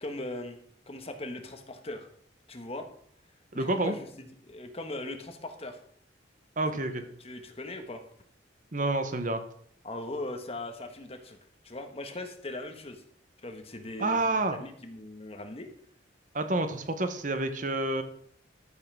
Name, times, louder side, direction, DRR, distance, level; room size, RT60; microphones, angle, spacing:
voice 1, 0.0-0.6 0.9-2.1 2.5-2.9 3.5-5.8 6.7-6.8 7.2-8.0 9.8-11.4 11.6-13.0 13.4-14.2 14.5-15.7, left 2 dB, 35° left, 6 dB, 1.4 m, -39 dB
voice 2, 3.5-4.0 6.6-7.0 8.7-9.4 14.0-14.6 16.3-18.0, right 2 dB, 45° right, 8 dB, 1.1 m, -28 dB
13.5 x 5.7 x 6.2 m, 0.64 s
head